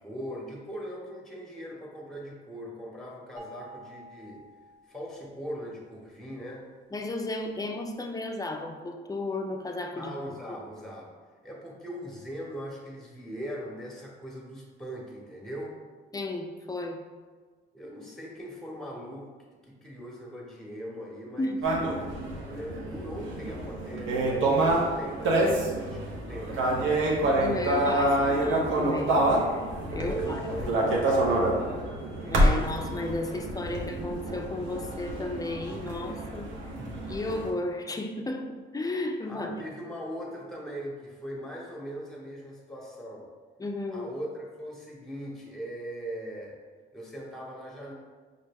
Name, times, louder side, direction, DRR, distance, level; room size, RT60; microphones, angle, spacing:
voice 1, 0.0-4.4 4.9-6.7 9.9-11.1 11.4-15.8 17.7-19.3 19.6-21.6 22.4-27.1 29.9-31.7 36.8-36.9 39.3-43.3 43.9-46.6 46.9-47.9, equal, ahead, -2 dB, 1.0 m, -40 dB
sound 1, 3.4-5.6, right 1 dB, 35° right, 0.7 m, -49 dB
voice 2, 6.9-10.1 10.5-10.6 16.1-17.0 21.4-21.9 27.4-29.6 29.9-30.4 32.3-36.5 37.1-39.6 43.6-44.1, left 2 dB, 20° left, 4 dB, 0.4 m, -34 dB
sound 2, 21.6-37.5, right 1 dB, 75° right, 0.8 m, -27 dB
5.2 x 2.1 x 3.4 m, 1.5 s
cardioid pair, 90°, 20 cm